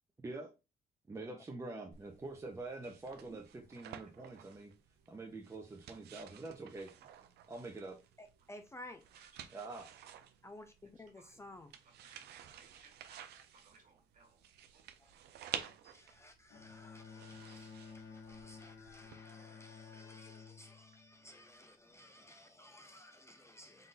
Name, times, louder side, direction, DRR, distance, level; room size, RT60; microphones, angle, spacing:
voice 1, 1.1-4.7 5.1-7.1 7.5-8.0 9.5-9.9, right 2 dB, 15° right, 0.7 m, -45 dB
sound 1, 1.9-19.2, right 9 dB, 80° right, 0.6 m, -52 dB
voice 2, 8.2-9.0 10.4-11.7 13.3-13.4 15.0-15.1 15.6-23.9, left 1 dB, 15° left, 0.4 m, -55 dB
voice 3, 11.8-14.4 14.7-14.8, right 4 dB, 50° right, 1.8 m, -64 dB
Bowed string instrument, 16.5-21.9, left 5 dB, 65° left, 1.9 m, -54 dB
4.0 x 2.5 x 3.8 m
cardioid pair, 110°, 17 cm